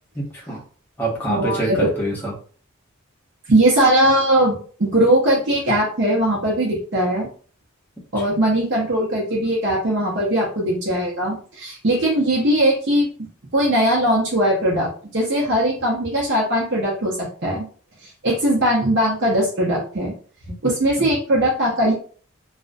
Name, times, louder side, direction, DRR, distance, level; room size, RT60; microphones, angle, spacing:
voice 1, 0.1-0.6 1.0-2.3 20.5-20.6 21.0-21.1, right 1 dB, 10° left, -5 dB, 0.7 m, -26 dB
voice 2, 1.3-1.9 3.5-7.3 8.1-13.1 13.5-17.6 18.2-20.1 20.6-21.9, right 1 dB, 55° right, -4 dB, 0.6 m, -20 dB
2.4 x 2.1 x 2.5 m, 0.43 s
head